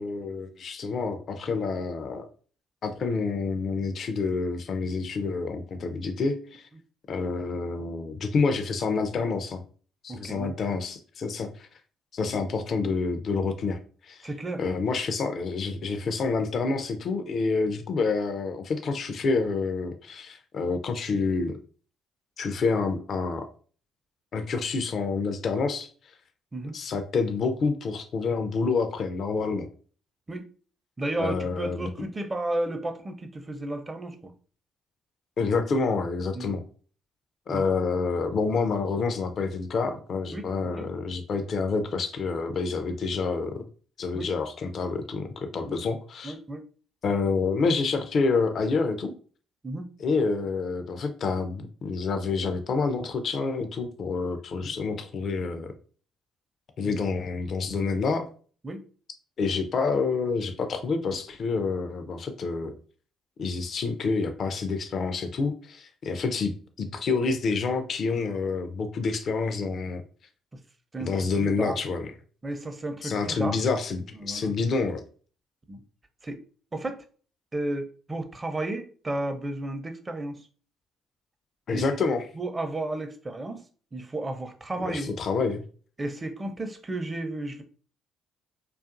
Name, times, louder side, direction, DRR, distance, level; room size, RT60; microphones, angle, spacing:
voice 1, 0.0-2.3 2.8-6.7 7.1-9.6 10.0-11.7 12.1-14.3 14.6-21.6 22.4-23.5 24.3-25.9 26.7-29.7 31.2-31.9 35.4-36.6 37.5-43.6 44.0-46.3 47.0-49.1 50.0-55.7 56.8-58.3 59.4-62.7 63.4-66.5 66.8-70.0 71.0-72.1 73.0-75.0 81.7-82.3 84.8-85.6, left 4 dB, 55° left, 7 dB, 0.4 m, -28 dB
voice 2, 10.1-10.5 14.2-14.6 26.5-26.7 30.3-30.4 31.0-34.3 36.3-36.6 37.5-37.7 40.3-40.9 44.1-44.3 45.7-45.8 46.2-46.6 49.6-49.9 54.6-54.7 56.8-56.9 58.6-58.8 70.9-71.1 71.4-71.8 72.4-73.6 74.1-74.5 75.7-75.8 76.2-76.4 76.7-77.0 77.5-80.4 81.7-82.0 82.4-83.6 83.9-85.1 86.0-87.6, right 2 dB, 25° right, 7 dB, 0.5 m, -33 dB
2.5 x 2.4 x 2.5 m, 0.40 s
hypercardioid pair, 50°, 0 cm